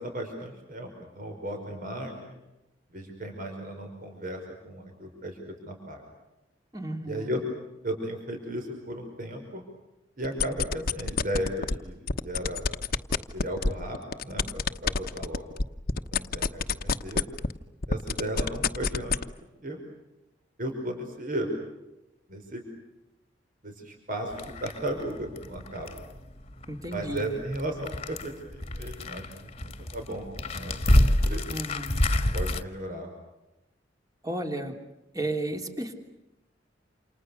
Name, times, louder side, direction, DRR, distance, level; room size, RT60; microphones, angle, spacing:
voice 1, 0.0-2.4 2.9-6.0 7.1-7.4 7.8-9.6 10.2-12.6 13.3-15.6 16.1-17.2 17.9-19.2 19.6-19.8 20.6-21.5 22.3-22.6 23.6-26.0 26.9-30.8 31.1-31.5 32.3-33.1, right 1 dB, 50° right, 3 dB, 5.5 m, -35 dB
voice 2, 6.7-7.3 26.7-27.4 31.5-32.1 34.2-34.8 35.1-35.9, right 1 dB, 20° right, 4 dB, 3.3 m, -33 dB
sound 1, 10.2-11.7 12.1-17.6 17.8-19.2, left 4 dB, 50° left, 1.1 m, -26 dB
sound 2, 24.3-32.6, left 1 dB, 35° left, 1.7 m, -28 dB
29.0 x 28.5 x 6.6 m, 0.94 s
head